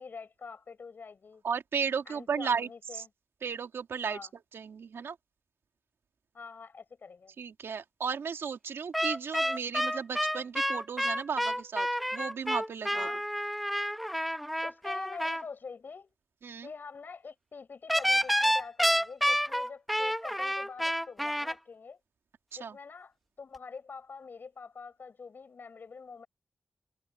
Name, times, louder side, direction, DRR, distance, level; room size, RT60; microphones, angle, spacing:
voice 1, 0.0-1.4 2.1-3.1 4.0-4.3 6.3-7.3 12.9-13.2 14.6-16.1 16.6-22.0 22.6-26.3, left 5 dB, 55° left, 7.7 m, -45 dB
voice 2, 1.4-3.0 3.4-5.2 7.4-13.1 16.4-16.7 22.5-22.8, right 6 dB, 80° right, 2.8 m, -35 dB
sound 1, 8.9-15.4 17.9-21.5, equal, ahead, 1.4 m, -29 dB
wide cardioid pair, 140°, 4 cm